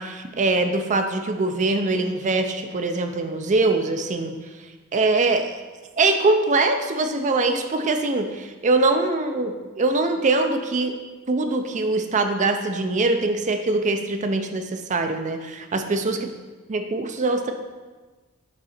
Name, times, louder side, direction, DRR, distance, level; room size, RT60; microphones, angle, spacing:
voice 1, 0.0-4.3 4.9-5.5 6.0-10.9 11.3-16.2 16.7-17.5, right 3 dB, 35° right, 6 dB, 0.5 m, -23 dB
7.8 x 3.7 x 4.3 m, 1.3 s
head